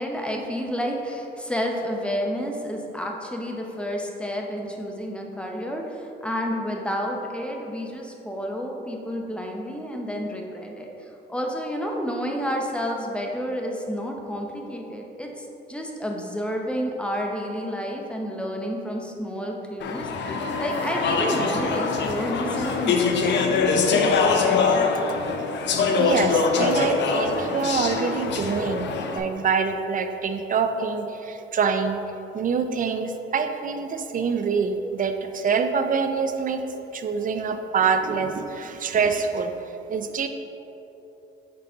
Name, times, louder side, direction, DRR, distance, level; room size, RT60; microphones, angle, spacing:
voice 1, 0.0-23.6, equal, 5° left, 1 dB, 0.8 m, -30 dB
Speech / Chatter, 19.8-29.2, left 4 dB, 65° left, 0.6 m, -23 dB
voice 2, 26.0-32.1 32.3-36.6 36.9-40.3, right 5 dB, 45° right, 8 dB, 0.4 m, -25 dB
6.7 x 4.0 x 3.9 m, 3.0 s
cardioid pair, 90°, 20 cm